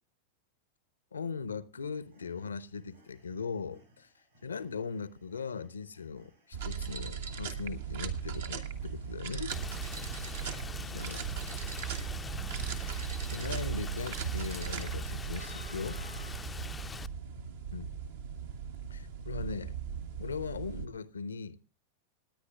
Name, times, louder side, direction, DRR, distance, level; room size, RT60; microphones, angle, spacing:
voice 1, 1.1-4.1 4.4-9.5 10.8-11.2 12.7-13.0 13.3-16.0 17.7-17.9 18.9-19.7 20.2-21.6, left 5 dB, 70° left, 0.8 m, -39 dB
sound 1, 1.9-13.6, equal, 80° right, 6.9 m, -65 dB
sound 2, 6.5-20.9, right 8 dB, 60° right, 1.4 m, -38 dB
Rain, 9.5-17.1, left 5 dB, 15° left, 0.5 m, -43 dB
26.5 x 10.0 x 2.3 m
figure-of-eight pair, 90°, 0 cm